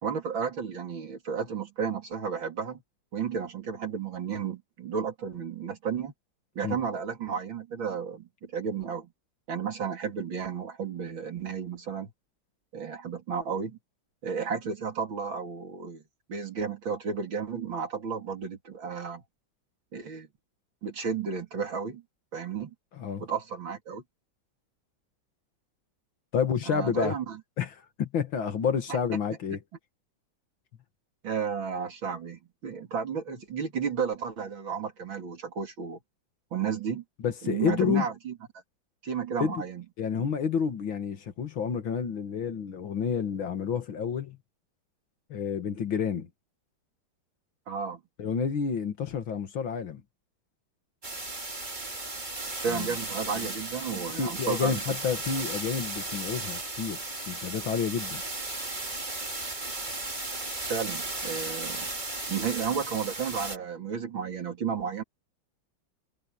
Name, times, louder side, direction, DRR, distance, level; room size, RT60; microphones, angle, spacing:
voice 1, 0.0-2.8 3.1-6.1 6.6-9.1 9.5-12.1 12.7-13.8 14.2-16.0 16.3-19.2 19.9-20.3 20.8-22.0 22.3-22.7 23.2-24.0 26.7-27.4 28.9-29.0 31.2-36.0 36.5-37.0 37.4-38.3 39.0-39.8 47.7-48.0 52.6-55.0 60.7-61.9 62.3-65.0, right 6 dB, 70° right, 3.6 m, -33 dB
voice 2, 26.3-27.2 27.6-29.6 37.2-38.1 39.4-39.6 40.0-44.4 45.3-46.3 48.2-50.0 52.7-52.9 53.2-53.5 54.2-57.0 57.3-58.2, left 7 dB, 75° left, 2.5 m, -29 dB
sound 1, 51.0-63.6, right 2 dB, 20° right, 2.6 m, -35 dB
omnidirectional pair, 2.2 m